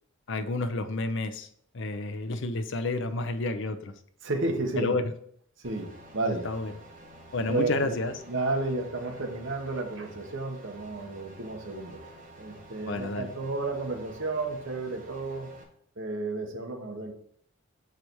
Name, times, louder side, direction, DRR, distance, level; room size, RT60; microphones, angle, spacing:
voice 1, 0.3-1.5 1.7-3.9 4.8-5.1 6.2-6.7 7.3-8.1 12.9-13.3, left 2 dB, 60° left, 9 dB, 0.6 m, -30 dB
voice 2, 4.2-5.0 5.6-6.5 7.4-8.0 8.3-12.1 12.4-15.5 16.0-17.1, right 3 dB, 60° right, 4 dB, 1.1 m, -32 dB
sound 1, 5.6-15.6, right 1 dB, 40° right, 1.4 m, -50 dB
6.7 x 4.9 x 4.6 m, 0.64 s
head